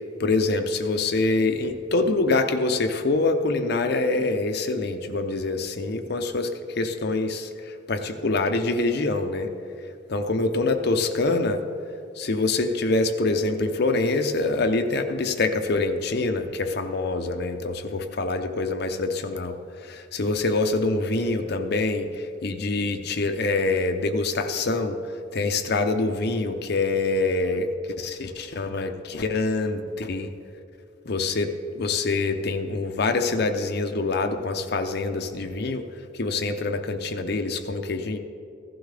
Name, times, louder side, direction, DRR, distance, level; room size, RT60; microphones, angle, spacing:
voice 1, 0.2-9.5 10.1-11.6 12.2-27.7 28.0-30.3 31.1-35.9 36.1-38.2, left 3 dB, 55° left, 6 dB, 0.7 m, -25 dB
15.5 x 12.0 x 3.4 m, 2.6 s
head